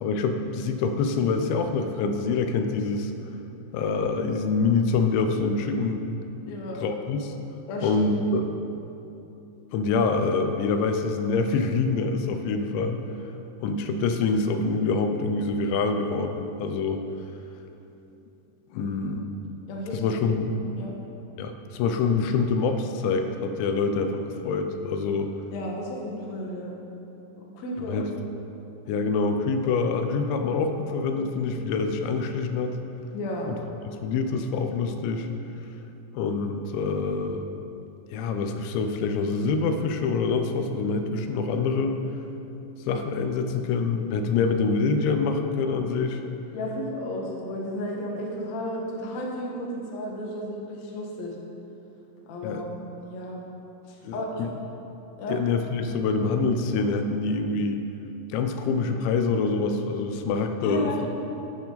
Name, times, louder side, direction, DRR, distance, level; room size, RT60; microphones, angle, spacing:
voice 1, 0.0-3.1 3.7-6.1 6.8-7.3 7.8-8.4 9.7-13.0 13.6-17.0 18.7-19.2 19.9-20.6 21.4-25.3 27.8-28.1 28.9-32.8 33.5-33.6 33.8-35.3 36.1-37.5 38.1-42.0 42.9-46.2 52.4-52.6 54.0-54.5 55.3-57.8 58.3-60.9, left 4 dB, 85° left, 6 dB, 3.0 m, -26 dB
voice 2, 6.4-6.8 7.7-8.1 18.8-19.0 19.7-20.0 20.8-21.0 25.5-26.7 27.4-28.0 33.1-33.5 46.5-51.4 52.3-52.7 52.9-53.4 53.9-54.4 55.2-55.4 60.6-61.1, left 1 dB, 60° left, -1 dB, 2.0 m, -33 dB
15.5 x 8.9 x 4.0 m, 2.9 s
omnidirectional pair, 5.2 m